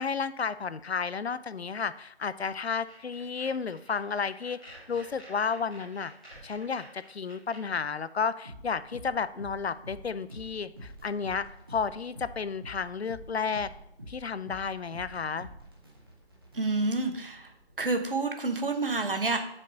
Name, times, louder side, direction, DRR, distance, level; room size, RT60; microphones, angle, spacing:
voice 1, 0.0-6.1 6.4-13.7 14.1-15.5, left 5 dB, 70° left, 15 dB, 0.5 m, -32 dB
sound 1, 2.4-7.6, right 1 dB, 5° left, 0.9 m, -51 dB
sound 2, 8.4-18.1, right 1 dB, 20° right, 1.0 m, -48 dB
voice 2, 16.5-17.5 17.8-19.4, right 3 dB, 55° right, 5 dB, 1.2 m, -28 dB
5.9 x 4.8 x 6.4 m, 0.77 s
figure-of-eight pair, 165°, 32 cm